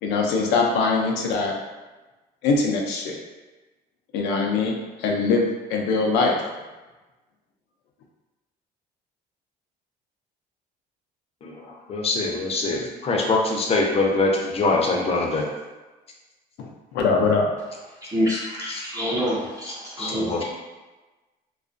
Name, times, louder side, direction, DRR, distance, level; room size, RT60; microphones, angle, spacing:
voice 1, 0.0-1.6 2.4-3.2 4.1-6.4 16.6-17.5, left 4 dB, 90° left, 0 dB, 0.5 m, -22 dB
voice 2, 11.4-15.4 18.7-18.8 20.0-20.4, left 3 dB, 35° left, -1 dB, 0.5 m, -23 dB
voice 3, 18.0-20.4, equal, 20° right, -7 dB, 0.5 m, -27 dB
2.3 x 2.3 x 2.4 m, 1.2 s
cardioid pair, 110°, 17 cm